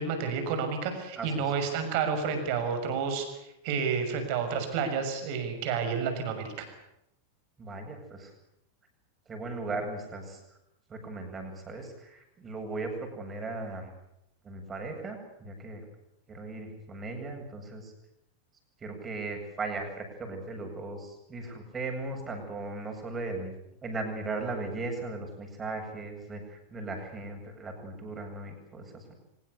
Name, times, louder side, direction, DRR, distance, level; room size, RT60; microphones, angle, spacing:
voice 1, 0.0-3.3 3.6-6.7, right 6 dB, 45° right, 7 dB, 6.4 m, -30 dB
voice 2, 7.6-8.3 9.3-10.4 10.9-13.9 14.4-15.8 16.3-17.9 18.8-23.5 23.8-29.1, right 3 dB, 20° right, 4 dB, 7.9 m, -37 dB
24.5 x 21.5 x 8.3 m, 0.82 s
figure-of-eight pair, 90°, 0 cm